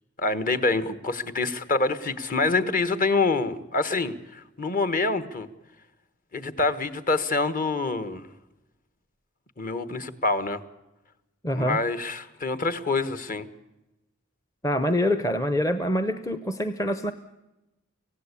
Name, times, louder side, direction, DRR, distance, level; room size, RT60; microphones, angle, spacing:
voice 1, 0.2-5.5 6.3-8.3 9.6-10.6 11.5-13.5, left 3 dB, 40° left, 13 dB, 1.4 m, -26 dB
voice 2, 11.4-11.8 14.6-17.1, equal, 15° left, 10 dB, 0.8 m, -25 dB
25.0 x 17.0 x 8.4 m, 0.98 s
head